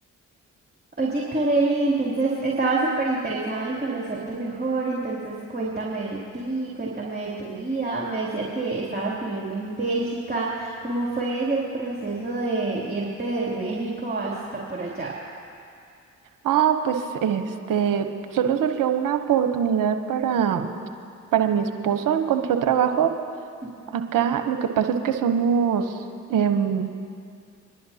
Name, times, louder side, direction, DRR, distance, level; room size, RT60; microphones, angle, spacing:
voice 1, 1.0-15.2 23.8-23.9, right 2 dB, 25° right, -4 dB, 2.8 m, -27 dB
voice 2, 16.4-20.7 21.3-23.2 23.9-25.9 26.3-26.9, right 8 dB, 65° right, 6 dB, 1.0 m, -23 dB
24.0 x 11.0 x 2.8 m, 2.4 s
hypercardioid pair, 45°, 35 cm